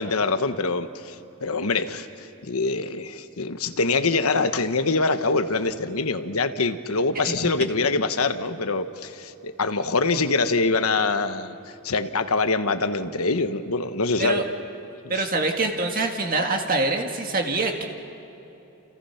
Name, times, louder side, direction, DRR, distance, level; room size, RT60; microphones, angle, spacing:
voice 1, 0.0-2.1 2.4-11.6 11.8-14.4 15.0-15.3, left 3 dB, 80° left, 9 dB, 1.2 m, -24 dB
voice 2, 15.1-17.8, right 2 dB, 40° right, 3 dB, 1.9 m, -24 dB
29.5 x 29.5 x 5.8 m, 3.0 s
head